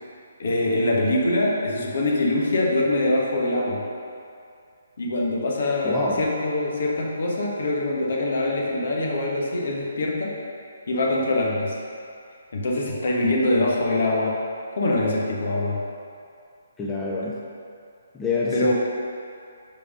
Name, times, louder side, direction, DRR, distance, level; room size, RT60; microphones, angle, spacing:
voice 1, 0.4-3.8 5.0-10.4 10.9-11.7 12.5-14.4 14.8-15.8 18.5-18.7, left 2 dB, 60° left, -2 dB, 1.3 m, -23 dB
voice 2, 5.8-6.2 16.8-17.4 18.1-18.7, left 3 dB, 10° left, -6 dB, 0.7 m, -26 dB
5.4 x 5.0 x 5.1 m, 2.4 s
figure-of-eight pair, 140°, 0 cm